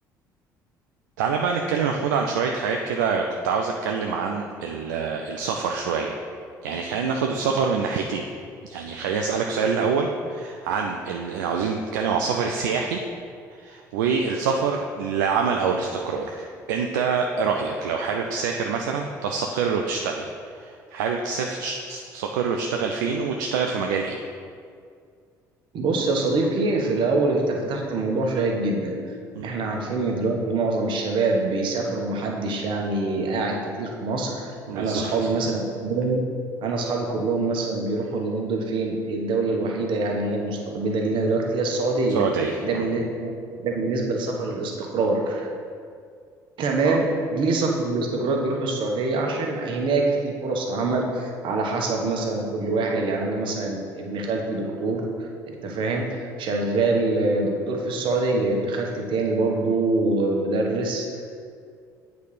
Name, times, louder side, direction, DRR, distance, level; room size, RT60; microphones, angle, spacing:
voice 1, 1.2-6.2 6.6-8.3 8.6-13.0 13.5-24.2 29.3-29.5 34.7-35.3 42.1-42.9 46.8-47.0, right 5 dB, 75° right, 2 dB, 0.4 m, -26 dB
voice 2, 25.7-28.9 29.4-36.2 36.6-42.2 42.6-43.3 43.6-45.5 46.6-61.2, right 3 dB, 55° right, 1 dB, 1.1 m, -25 dB
8.2 x 4.0 x 4.9 m, 2.2 s
figure-of-eight pair, 55°, 10 cm